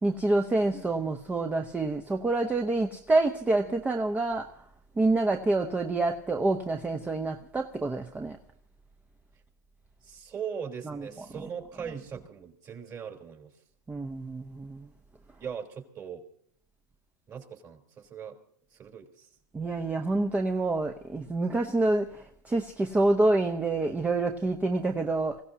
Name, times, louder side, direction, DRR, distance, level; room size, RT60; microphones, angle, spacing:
voice 1, 0.0-4.5 5.0-8.4 10.8-11.2 13.9-14.9 19.5-25.4, right 2 dB, 15° right, 0.9 m, -27 dB
voice 2, 10.0-13.5 15.4-16.2 17.3-18.4 18.8-19.3, right 7 dB, 35° right, 3.5 m, -40 dB
26.5 x 16.5 x 2.8 m
hypercardioid pair, 105°, 11 cm